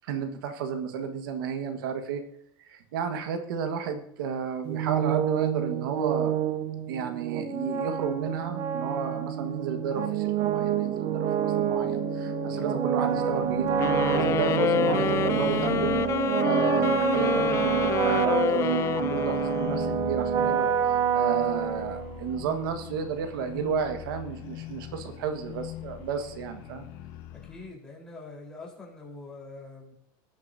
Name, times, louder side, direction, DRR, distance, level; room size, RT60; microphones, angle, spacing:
voice 1, 0.0-2.2 2.6-6.4 6.9-13.8 14.1-16.1 16.4-20.7 21.1-26.9, right 7 dB, 85° right, 6 dB, 1.6 m, -32 dB
sound 1, 4.7-22.3, right 8 dB, 40° right, 1.0 m, -27 dB
sound 2, 13.0-27.8, left 13 dB, 60° left, 1.1 m, -42 dB
sound 3, 13.8-20.2, left 10 dB, 25° left, 0.4 m, -28 dB
voice 2, 27.3-29.9, left 3 dB, 5° left, -3 dB, 4.1 m, -44 dB
18.0 x 9.6 x 2.7 m, 0.71 s
supercardioid pair, 155°, 11 cm